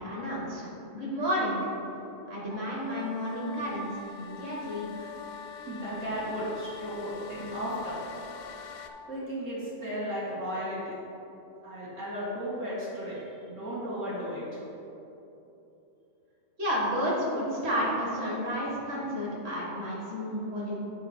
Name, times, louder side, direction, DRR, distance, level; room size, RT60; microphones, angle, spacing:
voice 1, 0.0-1.6 2.3-5.1 16.6-20.8, equal, 55° right, -5 dB, 2.0 m, -31 dB
sound 1, 2.5-8.9, left 7 dB, 85° left, 0.9 m, -45 dB
voice 2, 5.7-8.0 9.1-10.9 11.6-14.4, equal, 80° right, -8 dB, 2.0 m, -35 dB
8.7 x 4.4 x 4.3 m, 3.0 s
omnidirectional pair, 1.3 m